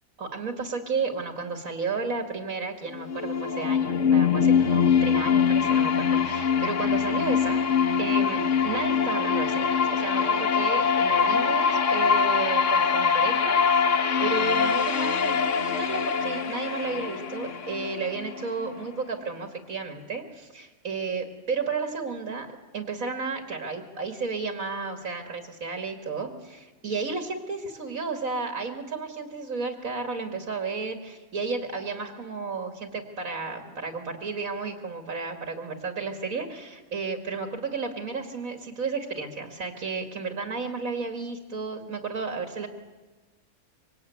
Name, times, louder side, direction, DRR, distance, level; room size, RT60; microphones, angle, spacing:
voice 1, 0.2-7.6 8.0-42.7, right 4 dB, 75° right, 5 dB, 2.6 m, -33 dB
sound 1, 2.9-18.9, left 6 dB, 60° left, 1.5 m, -23 dB
25.5 x 24.5 x 9.4 m, 1.2 s
omnidirectional pair, 1.5 m